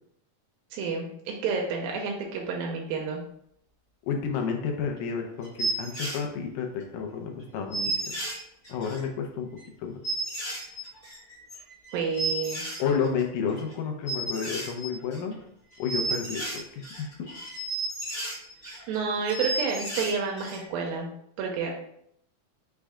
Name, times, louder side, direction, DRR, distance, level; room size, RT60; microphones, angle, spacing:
voice 1, 0.7-3.2 11.9-12.6 18.7-21.1 21.4-21.7, right 5 dB, 85° right, 0 dB, 2.4 m, -30 dB
voice 2, 4.1-7.9 8.7-9.5 9.8-10.0 12.8-15.3 15.8-17.3, left 6 dB, 80° left, 3 dB, 2.1 m, -31 dB
sound 1, 5.0-5.1 5.4-6.2 6.8-6.9 7.1-7.2 7.4-7.5 7.7-9.1 9.6-9.7 10.0-13.2 13.5-13.7 14.1-15.4 15.7-19.0 19.2-20.6 20.9-21.0, right 2 dB, 45° left, 1.1 m, -33 dB
6.2 x 2.3 x 3.5 m, 0.71 s
omnidirectional pair, 4.0 m